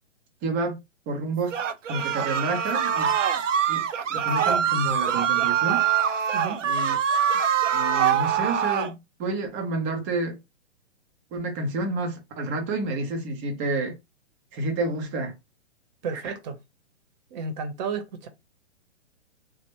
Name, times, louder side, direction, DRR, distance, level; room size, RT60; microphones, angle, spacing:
voice 1, 0.4-0.8 1.1-1.6 1.9-3.1 3.7-3.8 4.1-5.8 6.6-7.0 7.7-10.4 11.3-13.9 14.5-15.3 16.2-16.3, right 2 dB, 15° right, 0.4 m, -29 dB
sound 1, 1.5-8.9, right 8 dB, 90° right, 0.5 m, -24 dB
voice 2, 16.0-16.6 17.3-18.3, right 5 dB, 35° right, 0.7 m, -32 dB
3.2 x 2.1 x 2.9 m
figure-of-eight pair, 125°, 36 cm